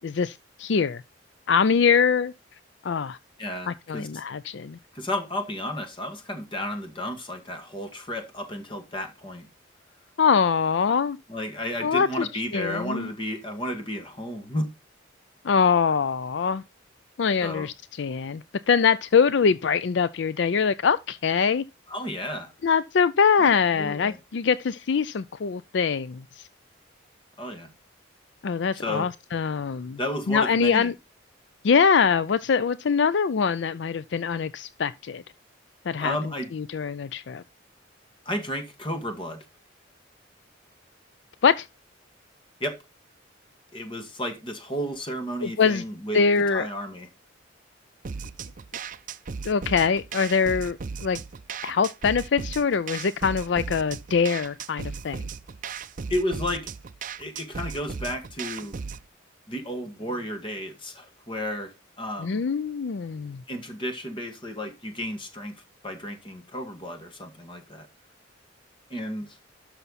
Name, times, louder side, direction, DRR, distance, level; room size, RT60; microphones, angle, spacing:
voice 1, 0.0-1.0 1.5-2.3 2.8-3.2 3.7-4.8 10.2-11.2 11.8-12.3 12.5-13.1 15.4-16.6 17.2-21.6 22.6-26.5 28.4-30.0 30.3-30.9 31.6-35.2 35.9-36.2 36.5-37.4 41.4-41.7 45.4-45.8 46.1-46.7 49.4-51.2 51.6-55.2 62.2-63.4, left 6 dB, 60° left, 0.4 m, -23 dB
voice 2, 3.4-4.2 4.9-9.5 11.3-14.7 17.4-17.7 21.9-22.5 23.4-24.2 27.4-27.7 28.7-29.1 30.0-30.9 36.0-36.5 38.3-39.5 42.6-42.8 43.7-46.2 46.5-47.1 56.1-56.7 57.2-58.8 59.5-62.4 63.5-65.5 65.8-67.9 68.9-69.4, left 1 dB, 25° left, 1.9 m, -32 dB
sound 1, 48.0-59.1, right 5 dB, 45° right, 0.5 m, -36 dB
12.5 x 5.8 x 4.1 m
head